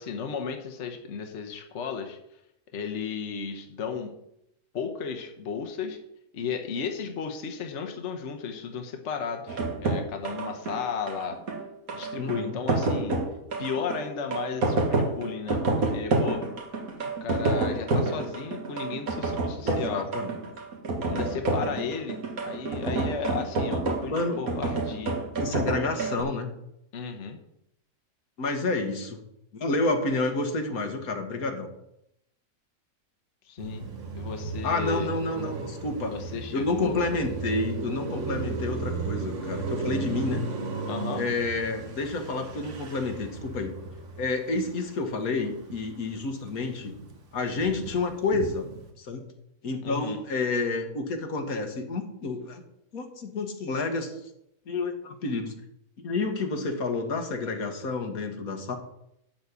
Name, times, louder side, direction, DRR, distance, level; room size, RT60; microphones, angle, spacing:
voice 1, 0.0-2.2 2.7-4.1 4.7-6.0 6.3-11.4 11.9-13.2 13.6-16.5 17.0-20.1 21.1-25.2 26.9-27.4 33.4-33.9 34.2-35.1 36.1-36.9 40.9-41.2 49.8-50.2, left 6 dB, 55° left, 4 dB, 1.3 m, -34 dB
sound 1, 9.5-26.2, right 2 dB, 70° right, 2.1 m, -28 dB
voice 2, 12.2-12.6 19.6-20.3 21.1-21.7 24.1-24.4 25.4-26.5 28.4-29.2 29.5-31.7 34.6-36.1 36.5-40.4 41.2-43.7 44.2-46.9 47.3-48.7 49.0-49.2 49.6-52.6 52.9-54.1 54.7-55.5 56.0-58.8, left 3 dB, 70° left, 5 dB, 1.7 m, -29 dB
Car passing by, 33.6-46.0 46.4-48.9, right 3 dB, 55° right, 1.7 m, -35 dB
11.5 x 4.3 x 8.2 m, 0.80 s
omnidirectional pair, 1.6 m